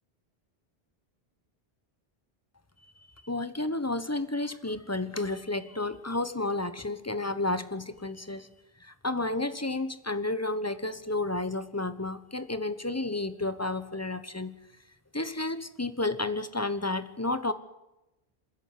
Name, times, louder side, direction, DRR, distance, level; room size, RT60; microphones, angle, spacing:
voice 1, 3.2-8.5 8.8-14.5 15.1-17.5, left 2 dB, 15° left, 12 dB, 1.2 m, -31 dB
27.5 x 11.0 x 9.6 m, 0.95 s
omnidirectional pair, 1.1 m